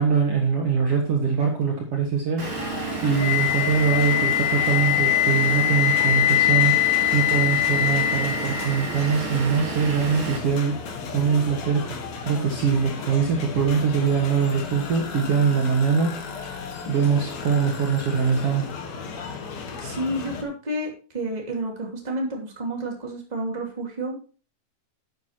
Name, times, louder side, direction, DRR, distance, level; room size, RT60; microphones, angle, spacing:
voice 1, 0.0-2.5 3.0-6.8 7.1-10.8 11.1-16.2 16.9-18.7, right 6 dB, 50° right, 1 dB, 2.2 m, -23 dB
sound 1, 2.4-20.4, left 5 dB, 60° left, 2.5 m, -35 dB
Vehicle / Engine, 2.4-10.4, right 5 dB, 35° right, 1.6 m, -32 dB
Wind instrument woodwind instrument, 3.2-9.1, left 14 dB, 85° left, 2.2 m, -22 dB
voice 2, 19.8-24.2, right 1 dB, 15° right, 0 dB, 2.4 m, -30 dB
11.5 x 9.2 x 2.9 m, 0.35 s
omnidirectional pair, 3.8 m